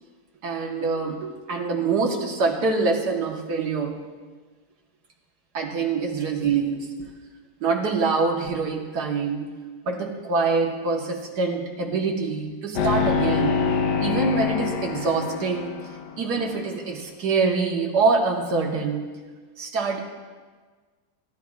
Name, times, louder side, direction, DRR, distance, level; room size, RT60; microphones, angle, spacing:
voice 1, 0.4-4.1 5.5-6.9 7.6-13.6 14.0-15.8 16.2-19.2 19.6-20.0, right 4 dB, 75° right, 1 dB, 1.9 m, -25 dB
sound 1, 12.8-16.2, left 5 dB, 90° left, 1.5 m, -25 dB
24.0 x 12.0 x 2.4 m, 1.4 s
omnidirectional pair, 1.8 m